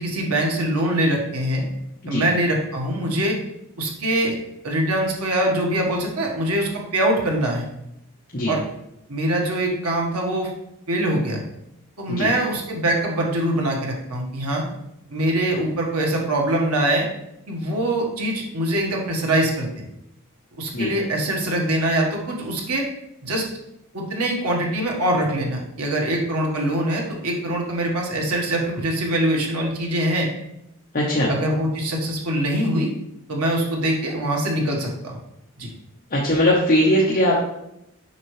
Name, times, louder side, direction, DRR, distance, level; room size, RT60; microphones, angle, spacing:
voice 1, 0.0-1.6 2.1-3.4 3.8-4.3 4.6-7.7 8.5-8.6 9.1-10.5 10.9-11.4 12.0-14.6 15.1-17.1 17.5-19.8 20.6-22.8 23.2-23.5 23.9-30.3 31.3-32.9 33.3-35.2 35.6-35.7, right 1 dB, 85° right, 0 dB, 1.5 m, -23 dB
voice 2, 30.9-31.3 36.1-37.4, left 1 dB, 40° left, -4 dB, 1.1 m, -19 dB
7.3 x 5.9 x 3.3 m, 0.83 s
head